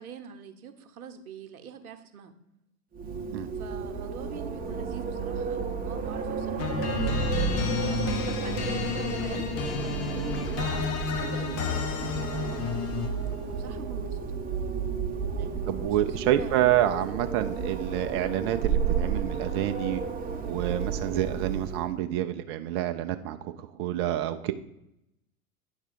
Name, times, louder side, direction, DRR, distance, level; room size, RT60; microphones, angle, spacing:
voice 1, 0.0-2.3 3.5-7.3 7.8-14.3 15.3-16.6 17.0-17.4, right 8 dB, 75° right, 7 dB, 0.9 m, -44 dB
Wind, 2.9-22.0, right 6 dB, 20° right, 0.8 m, -32 dB
sound 1, 6.6-13.3, left 6 dB, 35° left, 0.8 m, -31 dB
voice 2, 15.7-20.0 20.5-24.5, right 13 dB, 45° right, 8 dB, 0.5 m, -28 dB
9.9 x 3.6 x 5.0 m, 0.84 s
figure-of-eight pair, 85°, 45 cm